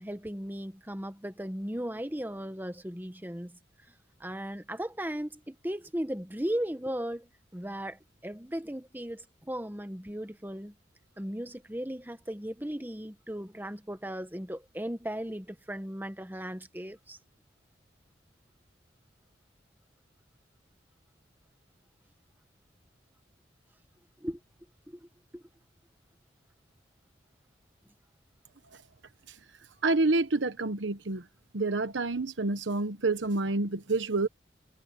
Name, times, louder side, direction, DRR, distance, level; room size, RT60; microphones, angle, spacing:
voice 1, 0.0-3.6 4.2-10.7 11.2-17.2 24.2-24.4 24.9-25.4, equal, 10° right, 1.3 m, -37 dB
voice 2, 29.8-31.2 31.5-34.3, right 3 dB, 85° right, 1.0 m, -28 dB
head